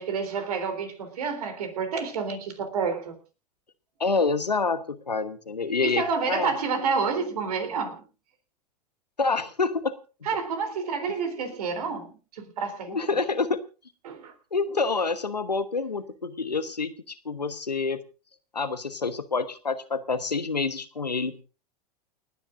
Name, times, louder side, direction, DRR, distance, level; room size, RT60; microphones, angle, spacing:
voice 1, 0.0-3.2 5.8-8.0 10.2-13.2 14.0-14.3, right 5 dB, 70° right, 3.6 m, -29 dB
voice 2, 4.0-6.5 9.2-10.0 12.9-13.6 14.5-18.0 18.5-21.4, left 4 dB, 90° left, 1.2 m, -27 dB
29.5 x 9.9 x 2.6 m
figure-of-eight pair, 90°, 20 cm